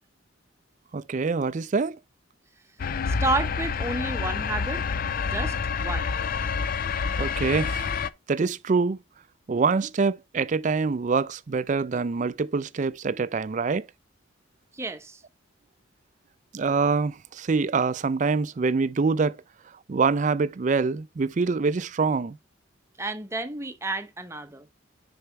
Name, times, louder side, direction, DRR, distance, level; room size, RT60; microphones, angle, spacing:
voice 1, 0.9-2.0 7.1-8.0 8.3-9.0 9.5-13.9 16.5-19.4 19.9-22.4, right 4 dB, 35° right, 0.4 m, -25 dB
sound 1, 2.8-8.1, left 5 dB, 45° left, 0.4 m, -28 dB
voice 2, 3.1-4.8 5.3-6.1 14.7-15.2 23.0-24.7, right 2 dB, 15° right, 0.7 m, -31 dB
6.7 x 4.4 x 4.6 m
head